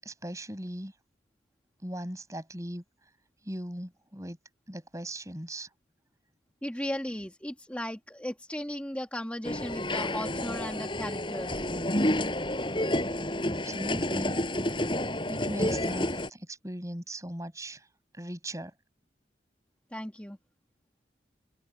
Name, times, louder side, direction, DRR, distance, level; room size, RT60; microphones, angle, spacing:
voice 1, 0.0-0.9 1.8-2.8 3.4-4.4 4.7-5.7 13.5-14.4 15.3-17.9 18.1-18.7, right 1 dB, 15° right, 7.4 m, -39 dB
voice 2, 6.6-11.7 19.9-20.4, equal, 5° left, 2.1 m, -36 dB
sound 1, 9.4-16.3, left 1 dB, 25° left, 5.4 m, -30 dB
head